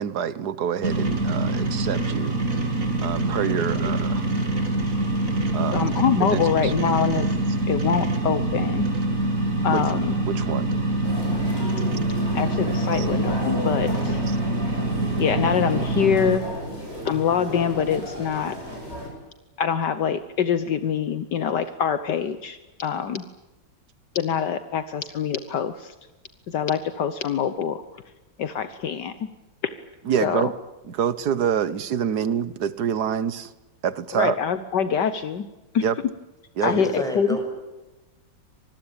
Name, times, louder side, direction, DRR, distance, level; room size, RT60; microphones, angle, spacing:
voice 1, 0.0-2.4 3.0-4.2 5.5-5.9 6.2-6.7 9.7-9.8 10.3-10.7 13.0-13.1 30.1-30.5 30.9-33.5 33.8-34.4 35.8-36.0 36.6-36.7, right 8 dB, 60° right, 16 dB, 1.7 m, -26 dB
sound 1, 0.8-16.4, right 2 dB, 45° right, 3.5 m, -25 dB
voice 2, 5.7-7.3 7.7-8.9 9.6-10.2 12.3-14.2 15.2-16.5 17.1-18.6 19.6-23.2 24.2-25.9 26.5-27.8 28.4-29.3 30.2-30.5 34.1-35.5 35.7-35.8 36.6-37.5, left 8 dB, 70° left, 12 dB, 1.7 m, -25 dB
sound 2, 11.0-19.1, equal, 35° left, 8.3 m, -35 dB
voice 3, 36.6-37.5, right 1 dB, ahead, 3 dB, 6.4 m, -28 dB
26.0 x 20.5 x 8.8 m, 1.1 s
omnidirectional pair, 2.0 m